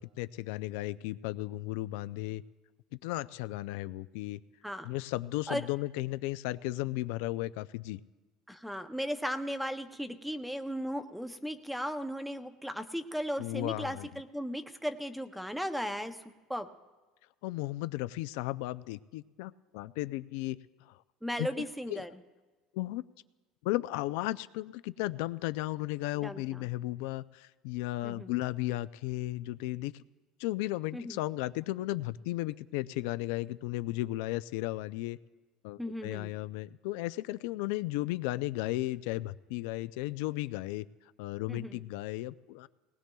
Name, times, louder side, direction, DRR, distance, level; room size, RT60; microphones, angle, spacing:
voice 1, 0.0-2.4 3.0-4.4 4.8-8.0 13.4-14.1 17.4-20.6 20.9-21.0 21.4-21.6 21.9-22.1 22.7-23.0 23.6-29.9 30.4-35.2 35.6-40.8 41.2-42.7, left 17 dB, 85° left, 14 dB, 0.3 m, -35 dB
voice 2, 8.5-16.2 16.5-16.7 21.2-22.1 26.2-26.6 28.0-28.3 30.9-31.2 35.8-36.3 41.5-41.8, equal, ahead, 9 dB, 0.6 m, -36 dB
19.5 x 19.5 x 2.3 m, 1.2 s
cardioid pair, 160°, 0 cm